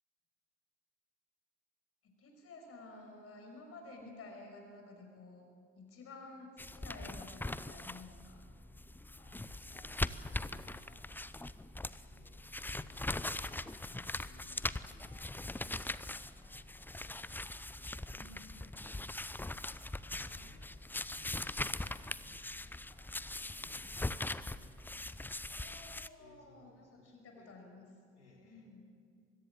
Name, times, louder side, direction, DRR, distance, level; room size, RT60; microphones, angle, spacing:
voice 1, 2.0-5.5 5.7-8.5 18.1-18.6 25.5-27.9 28.4-28.8, left 2 dB, 40° left, 3 dB, 5.7 m, -52 dB
sound 1, 6.6-26.1, left 2 dB, 5° left, 0.6 m, -41 dB
voice 2, 9.2-11.6 12.1-16.7 17.0-17.3 18.2-19.2 20.1-25.6 26.2-27.5 28.1-28.7, left 2 dB, 85° left, 0 dB, 3.4 m, -64 dB
25.0 x 22.0 x 7.5 m, 2.1 s
figure-of-eight pair, 55°, 34 cm